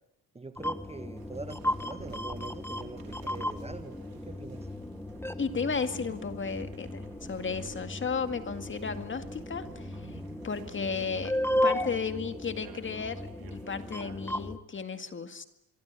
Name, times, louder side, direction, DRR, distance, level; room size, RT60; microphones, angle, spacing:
voice 1, 0.3-4.7, right 3 dB, 15° right, 10 dB, 1.3 m, -43 dB
sound 1, 0.6-14.6, left 1 dB, 5° left, 1.3 m, -35 dB
sound 2, 1.2-14.5, right 8 dB, 65° right, 3.5 m, -53 dB
voice 2, 5.4-11.3 11.6-15.4, left 5 dB, 30° left, 9 dB, 2.1 m, -34 dB
26.5 x 23.0 x 9.7 m, 0.82 s
cardioid pair, 150°, 39 cm